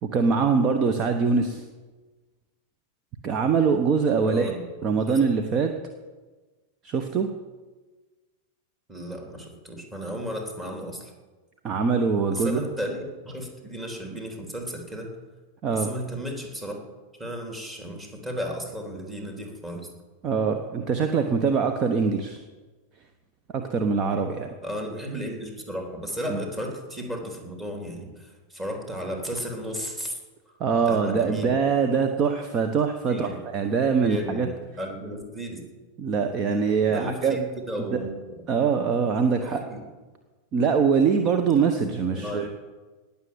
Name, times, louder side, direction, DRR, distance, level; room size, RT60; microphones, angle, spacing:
voice 1, 0.0-1.6 3.2-4.5 4.8-5.7 6.8-7.3 11.6-12.6 15.6-15.9 20.2-22.4 23.5-24.5 26.3-26.4 30.6-34.5 36.0-37.4 37.9-38.0 38.5-39.6 40.5-42.5, right 5 dB, 30° right, 7 dB, 1.1 m, -23 dB
voice 2, 4.2-5.2 8.9-11.1 12.3-15.1 15.7-16.8 17.2-19.9 24.6-30.2 30.5-30.6 30.9-31.6 33.1-33.4 34.0-34.5 34.8-35.7 36.9-38.4 39.4-39.8 42.1-42.5, equal, 15° right, 1 dB, 3.6 m, -34 dB
19.0 x 7.1 x 8.2 m, 1.3 s
figure-of-eight pair, 90°, 0 cm